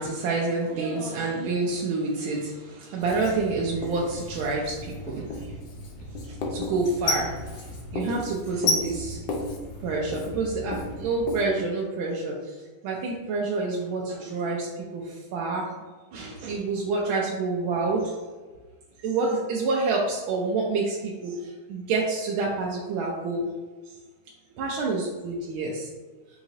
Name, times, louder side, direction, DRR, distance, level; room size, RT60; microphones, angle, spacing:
voice 1, 0.0-5.3 6.5-7.3 7.9-9.2 9.8-12.3 12.8-14.7 14.9-15.0 15.3-15.7 16.1-18.1 19.0-21.3 21.7-23.5 24.6-25.9, right 3 dB, 80° right, -3 dB, 1.3 m, -27 dB
Writing, 3.0-11.5, left 2 dB, 65° left, 1.3 m, -33 dB
4.8 x 2.9 x 2.6 m, 1.3 s
omnidirectional pair, 2.3 m